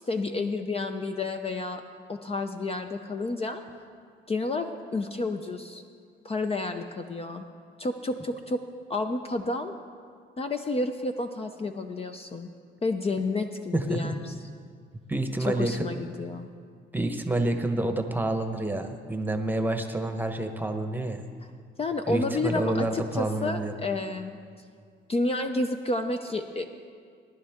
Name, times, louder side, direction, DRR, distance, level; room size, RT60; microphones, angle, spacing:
voice 1, 0.1-1.8 2.1-3.6 4.3-5.8 6.2-7.4 7.8-9.7 10.4-12.5 12.8-14.3 15.4-16.5 21.8-24.4 25.1-26.7, left 2 dB, 30° left, 6 dB, 0.6 m, -30 dB
voice 2, 13.7-14.1 15.1-15.8 16.9-21.2 22.1-23.7, right 2 dB, 10° right, 5 dB, 1.0 m, -28 dB
19.0 x 11.0 x 3.6 m, 2.1 s
cardioid pair, 90°, 20 cm